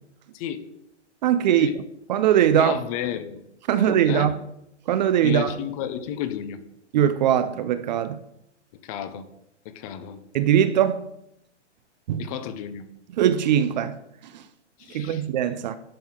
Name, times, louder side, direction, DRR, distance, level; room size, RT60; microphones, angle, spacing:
voice 1, 0.3-0.7 1.5-1.8 2.5-3.4 3.7-4.3 5.2-6.6 8.8-9.3 9.6-10.2 12.2-12.9 14.8-15.3, left 10 dB, 30° left, 0.6 m, -32 dB
voice 2, 1.2-1.7 2.1-2.8 3.7-4.3 4.9-5.6 6.9-8.2 10.3-11.1 12.1-12.2 13.2-14.0 14.3-14.4 14.9-15.8, right 10 dB, 40° right, 0.4 m, -21 dB
10.5 x 5.5 x 3.7 m
hypercardioid pair, 130°, 36 cm